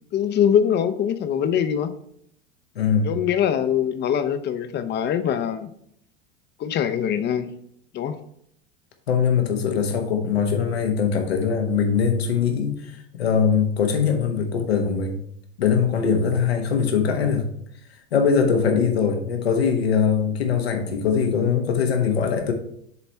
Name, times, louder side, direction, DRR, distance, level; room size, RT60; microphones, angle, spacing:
voice 1, 0.1-1.9 3.0-5.7 6.6-7.5 7.9-8.2, left 9 dB, 35° left, 10 dB, 0.7 m, -23 dB
voice 2, 2.7-3.2 9.1-15.2 15.6-17.5 18.1-22.5, left 6 dB, 80° left, 4 dB, 1.2 m, -22 dB
7.0 x 4.1 x 4.5 m, 0.71 s
hypercardioid pair, 80°, 30 cm